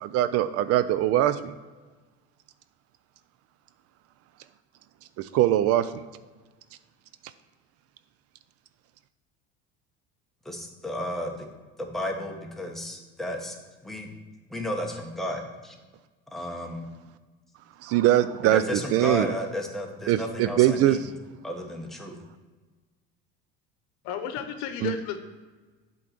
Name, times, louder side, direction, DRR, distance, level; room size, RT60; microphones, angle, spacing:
voice 1, 0.0-1.5 5.2-6.0 17.8-19.3 20.1-21.0 24.8-24.9, right 13 dB, 55° right, 13 dB, 0.4 m, -22 dB
voice 2, 10.4-11.5 11.8-13.6 13.8-14.1 14.5-15.7 16.3-16.9 18.4-21.1 21.4-22.2, equal, ahead, 1 dB, 1.1 m, -33 dB
voice 3, 24.0-25.2, left 8 dB, 70° left, 8 dB, 0.9 m, -32 dB
7.5 x 3.9 x 6.0 m, 1.3 s
supercardioid pair, 95°, 30 cm